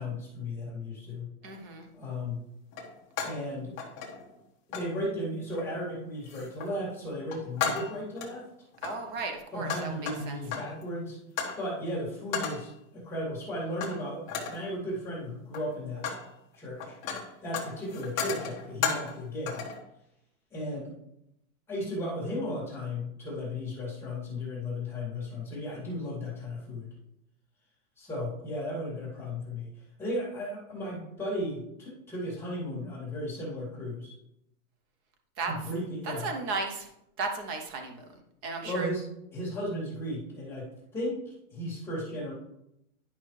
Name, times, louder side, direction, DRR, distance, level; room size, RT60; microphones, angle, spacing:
voice 1, 0.0-1.3 1.9-2.4 3.2-3.7 4.7-8.5 9.5-11.2 11.6-16.1 16.5-17.0 17.4-19.6 20.5-20.9 21.7-26.9 28.0-29.7 30.0-34.1 35.4-36.3 38.6-39.0 39.3-40.7 40.9-42.3, left 1 dB, 5° left, -8 dB, 2.2 m, -35 dB
sound 1, 1.4-1.6 2.7-3.5 3.8-4.4 4.7-4.9 5.5-5.9 6.3-6.8 7.1-8.3 8.7-10.8 11.4-11.6 12.3-12.7 13.8-14.0 14.3-14.7 15.4-16.3 16.5-19.2 19.5-19.8, left 6 dB, 25° left, 1.1 m, -35 dB
voice 2, 1.4-1.9 8.8-10.4 35.4-35.5 36.0-36.9 37.2-38.9, right 3 dB, 15° right, 5 dB, 0.5 m, -35 dB
10.5 x 5.6 x 3.1 m, 0.83 s
supercardioid pair, 170°, 43 cm